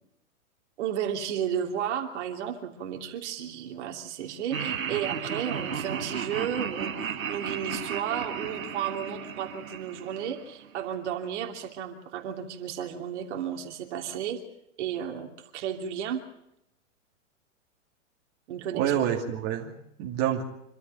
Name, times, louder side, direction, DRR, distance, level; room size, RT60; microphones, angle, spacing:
voice 1, 0.8-14.4 14.8-16.2 18.5-18.9, right 9 dB, 60° right, 3 dB, 3.0 m, -33 dB
Laughter, 4.5-10.7, right 7 dB, 85° right, 2.0 m, -34 dB
voice 2, 18.7-20.5, right 10 dB, 40° right, 0 dB, 2.6 m, -28 dB
27.0 x 12.5 x 9.0 m, 0.79 s
hypercardioid pair, 120°, 39 cm